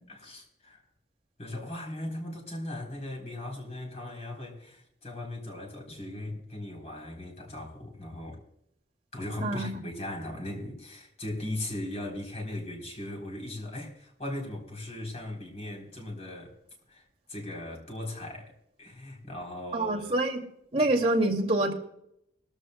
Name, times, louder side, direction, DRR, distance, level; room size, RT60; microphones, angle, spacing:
voice 1, 0.1-0.8 1.4-8.4 9.1-16.5 16.9-18.5 18.8-20.0 20.8-20.9, left 1 dB, 40° left, 3.5 m, -38 dB
voice 2, 19.7-20.4 20.7-21.7, right 2 dB, 35° right, 2.3 m, -26 dB
20.5 x 14.5 x 2.2 m
head